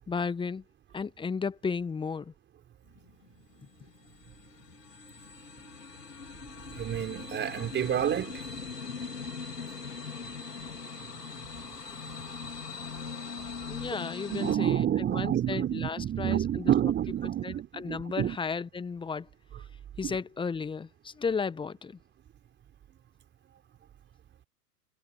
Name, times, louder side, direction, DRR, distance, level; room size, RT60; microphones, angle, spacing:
voice 1, 0.1-0.6 0.9-2.3 13.7-14.8 15.1-16.7 17.4-19.3 20.0-22.0, left 5 dB, 10° left, 1.4 m, -34 dB
sound 1, 3.0-14.6, left 5 dB, 80° left, 4.2 m, -41 dB
voice 2, 6.7-8.5 12.0-13.2 14.3-18.4 20.0-20.2, right 10 dB, 20° right, 4.4 m, -29 dB
figure-of-eight pair, 105°, 48 cm